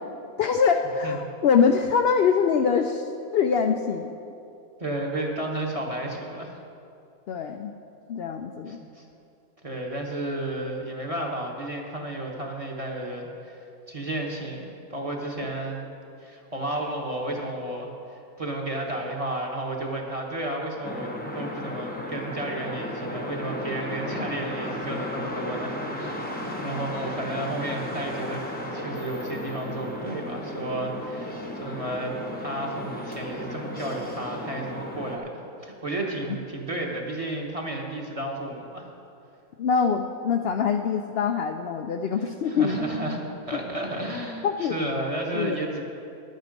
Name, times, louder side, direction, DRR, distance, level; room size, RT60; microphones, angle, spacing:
voice 1, 0.4-4.1 7.3-7.7 8.1-8.8 39.6-42.8 44.4-44.8 45.3-45.6, left 6 dB, 75° left, 5 dB, 0.5 m, -24 dB
voice 2, 4.8-6.6 8.7-9.0 9.6-13.6 13.9-15.9 16.2-32.1 32.4-35.3 35.6-38.9 42.4-43.2 43.5-45.8, right 1 dB, 25° right, 0 dB, 1.1 m, -32 dB
sound 1, 20.8-35.2, left 1 dB, 10° left, 0.8 m, -34 dB
11.0 x 9.3 x 5.2 m, 2.6 s
omnidirectional pair, 1.6 m